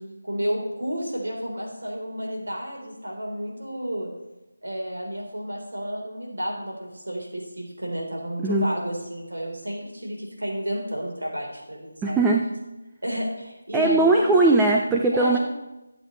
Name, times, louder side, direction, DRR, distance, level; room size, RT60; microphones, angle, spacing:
voice 1, 0.2-4.1 4.6-12.2 13.0-14.6 15.1-15.4, equal, 80° right, -1 dB, 3.8 m, -31 dB
voice 2, 12.0-12.5 13.7-15.4, right 2 dB, 5° right, 0 dB, 0.6 m, -19 dB
22.0 x 8.0 x 3.2 m, 1.0 s
figure-of-eight pair, 160°, 0 cm